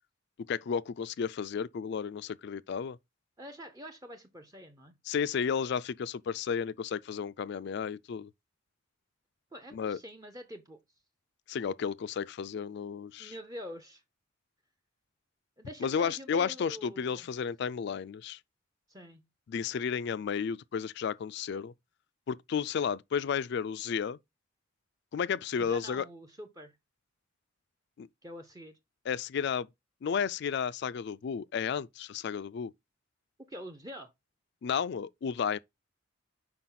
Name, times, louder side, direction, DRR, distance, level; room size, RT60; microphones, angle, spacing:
voice 1, 0.5-3.0 5.1-8.3 9.7-10.0 11.5-13.3 15.8-18.4 19.5-21.7 22.3-24.2 25.1-26.1 28.0-28.1 29.1-29.7 30.0-32.7 34.6-35.6, left 7 dB, 55° left, 0.3 m, -32 dB
voice 2, 3.4-4.9 9.5-10.8 13.2-14.0 15.6-17.3 18.9-19.2 25.6-26.7 28.2-28.7 33.5-34.1, equal, 15° right, 0.6 m, -46 dB
5.8 x 4.9 x 3.8 m
head